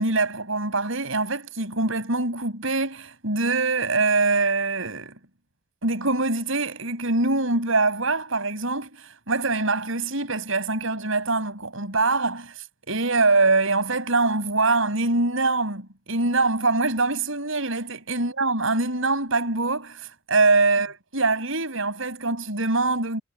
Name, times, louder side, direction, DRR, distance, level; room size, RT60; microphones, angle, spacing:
voice 1, 0.0-5.2 5.8-23.2, right 3 dB, 65° right, 6.7 m, -24 dB
head